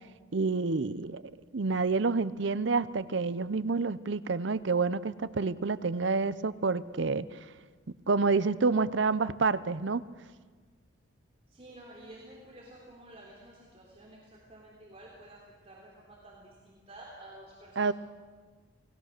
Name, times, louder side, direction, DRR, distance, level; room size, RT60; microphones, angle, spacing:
voice 1, 0.3-1.2 1.5-7.3 8.1-10.0 17.8-17.9, right 4 dB, 65° right, 16 dB, 0.6 m, -28 dB
voice 2, 11.5-17.9, right 1 dB, 30° right, -4 dB, 3.5 m, -51 dB
28.5 x 18.5 x 6.7 m, 1.5 s
head